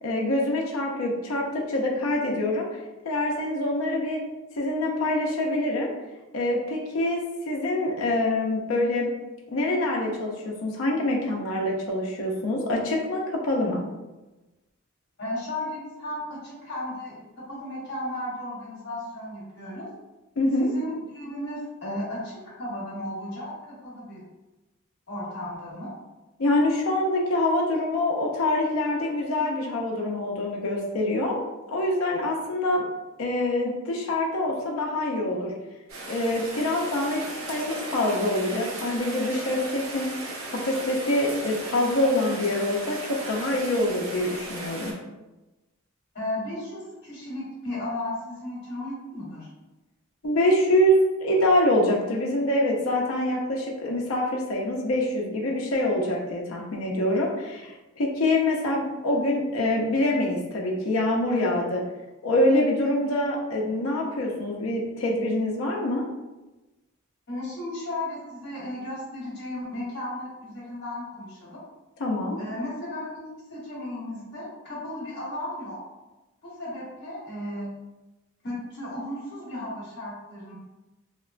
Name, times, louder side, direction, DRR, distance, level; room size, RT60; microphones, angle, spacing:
voice 1, 0.0-2.7 3.0-4.2 4.5-5.9 6.3-9.1 9.5-13.8 20.4-20.7 26.4-31.4 31.7-32.9 33.2-35.5 36.0-37.2 37.5-40.2 40.5-44.9 50.2-61.8 62.2-66.0 72.0-72.4, left 1 dB, 80° left, -1 dB, 0.5 m, -25 dB
voice 2, 15.2-19.9 20.6-24.2 25.1-25.9 46.1-49.5 67.3-71.6 72.4-75.8 76.4-77.7 78.4-80.5, left 1 dB, 55° left, -6 dB, 1.1 m, -35 dB
Rain, 35.9-44.9, right 2 dB, 85° right, 0.6 m, -36 dB
2.8 x 2.1 x 2.4 m, 1.1 s
head